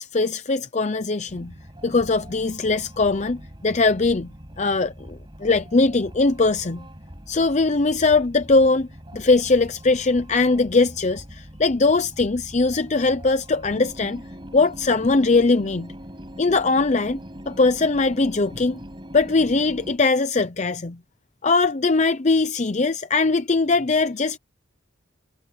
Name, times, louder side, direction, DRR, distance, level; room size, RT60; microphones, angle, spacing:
voice 1, 0.0-1.5 1.8-4.3 4.6-6.9 7.3-8.9 9.1-14.2 14.5-15.9 16.4-17.2 17.5-18.8 19.1-21.0 21.4-24.4, left 3 dB, 35° left, 0.7 m, -21 dB
sound 1, 1.3-20.0, equal, 25° right, 5.7 m, -42 dB
head